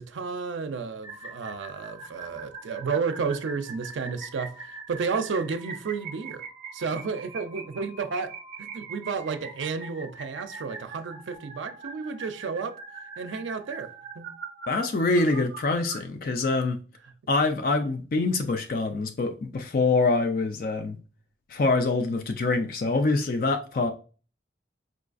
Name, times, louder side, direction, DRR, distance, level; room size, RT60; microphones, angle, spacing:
voice 1, 0.0-6.4 6.7-12.8 13.2-14.3, right 5 dB, 85° right, 0.4 m, -32 dB
sound 1, 1.0-16.0, right 4 dB, 40° right, 0.8 m, -42 dB
voice 2, 14.7-16.8 17.3-21.0 21.5-23.9, left 3 dB, 50° left, 0.4 m, -25 dB
4.8 x 2.3 x 2.4 m
head